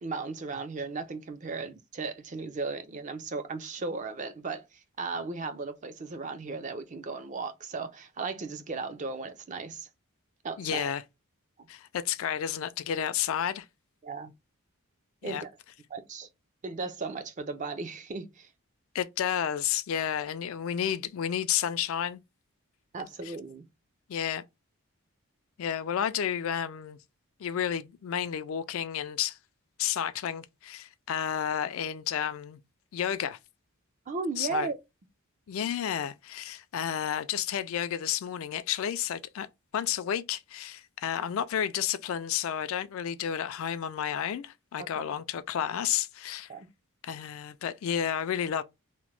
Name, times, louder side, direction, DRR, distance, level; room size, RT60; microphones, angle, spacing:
voice 1, 0.0-4.6 5.0-9.9 10.4-10.9 14.0-14.3 15.2-15.5 15.9-16.3 16.6-18.5 22.9-23.7 34.1-34.8 44.8-45.1 46.5-46.7, right 4 dB, 35° right, 0.4 m, -36 dB
voice 2, 10.6-11.0 11.7-13.7 15.2-15.4 18.9-22.2 23.2-23.4 24.1-24.4 25.6-27.0 27.4-29.4 29.8-32.6 32.9-33.4 34.4-34.7 35.5-39.5 39.7-46.5 47.0-48.6, left 9 dB, 65° left, 0.3 m, -31 dB
2.9 x 2.1 x 3.0 m
head